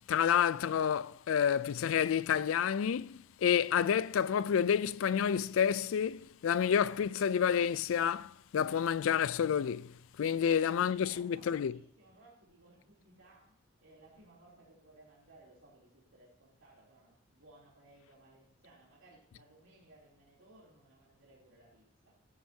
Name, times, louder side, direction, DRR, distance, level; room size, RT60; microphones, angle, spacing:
voice 1, 0.1-9.9 10.2-11.7, left 8 dB, 90° left, 0.4 m, -29 dB
voice 2, 10.4-22.2, right 2 dB, 85° right, 3.1 m, -61 dB
14.5 x 9.5 x 2.8 m
head